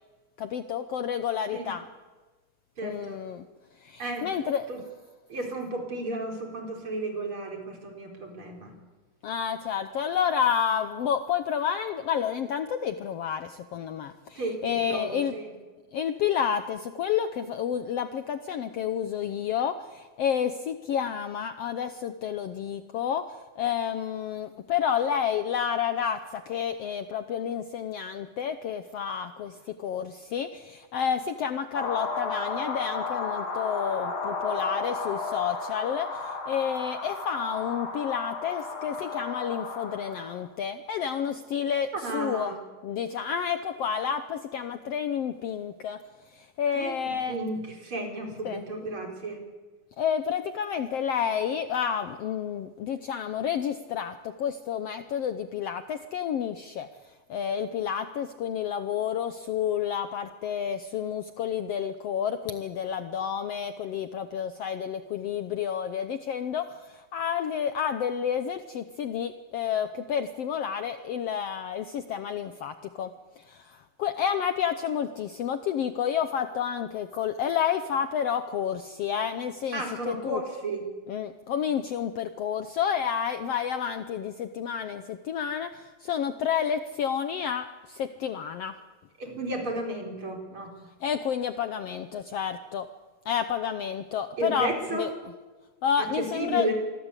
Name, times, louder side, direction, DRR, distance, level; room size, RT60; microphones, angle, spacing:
voice 1, 0.4-1.9 2.8-3.5 3.8-4.7 9.2-15.4 15.9-42.5 42.8-46.0 46.3-47.4 48.5-48.6 50.0-56.9 57.3-80.4 81.1-88.8 91.0-92.9 93.3-95.1 95.8-96.7, left 8 dB, 65° left, 10 dB, 1.6 m, -30 dB
voice 2, 2.8-3.2 4.0-4.4 4.7-4.8 5.3-8.8 14.4-15.5 41.9-42.6 46.7-49.4 79.7-80.9 89.2-90.8 94.4-95.1 96.0-96.7, right 2 dB, 40° right, 2 dB, 5.2 m, -33 dB
sound 1, 31.7-40.4, left 4 dB, 90° left, 5.3 m, -33 dB
26.5 x 21.0 x 8.3 m, 1.3 s
omnidirectional pair, 3.6 m